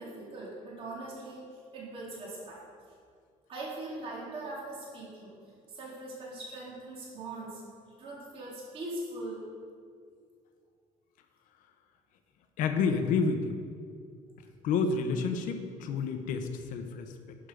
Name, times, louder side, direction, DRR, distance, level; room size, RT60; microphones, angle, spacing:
voice 1, 0.0-1.5 1.7-2.6 3.5-5.4 5.7-7.6 8.0-9.4, right 2 dB, 45° right, -4 dB, 2.6 m, -41 dB
voice 2, 12.6-13.6 14.6-17.4, left 5 dB, 75° left, 7 dB, 0.9 m, -29 dB
11.5 x 6.3 x 5.2 m, 2.2 s
cardioid pair, 165°, 14 cm